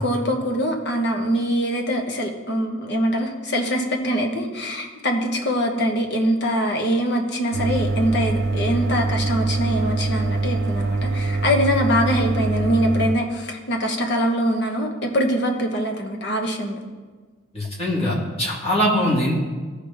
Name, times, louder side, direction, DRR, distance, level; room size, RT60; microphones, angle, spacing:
voice 1, 0.0-16.8, equal, 50° left, 2 dB, 1.1 m, -23 dB
sound 1, 7.5-13.2, right 3 dB, 50° right, 0.4 m, -24 dB
voice 2, 17.5-19.3, equal, 30° left, -5 dB, 1.9 m, -22 dB
14.0 x 5.0 x 3.5 m, 1.4 s
head